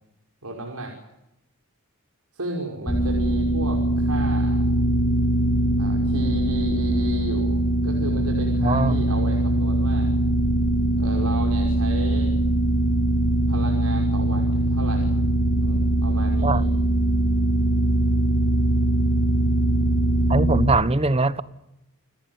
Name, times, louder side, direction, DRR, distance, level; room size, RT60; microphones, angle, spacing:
voice 1, 0.4-0.9 2.3-4.6 5.8-10.1 11.0-12.3 13.5-15.2 15.6-16.7, right 2 dB, 90° right, 1 dB, 5.7 m, -34 dB
sound 1, 2.9-20.7, right 1 dB, 35° left, 3.4 m, -21 dB
voice 2, 8.6-9.0 16.4-16.6 20.3-21.4, right 2 dB, 25° right, 15 dB, 1.2 m, -21 dB
29.5 x 18.5 x 9.5 m, 0.87 s
head